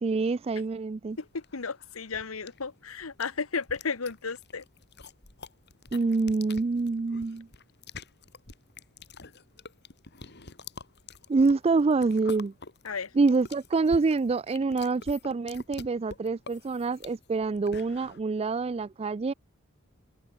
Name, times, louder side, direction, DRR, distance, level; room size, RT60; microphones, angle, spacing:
voice 1, 0.0-1.2 5.9-7.5 11.3-12.5 13.1-19.3, right 4 dB, 30° right, 0.4 m, -26 dB
voice 2, 1.2-4.6 12.8-13.1, left 5 dB, 90° left, 1.2 m, -34 dB
sound 1, 1.2-18.2, left 4 dB, 55° left, 3.7 m, -47 dB
head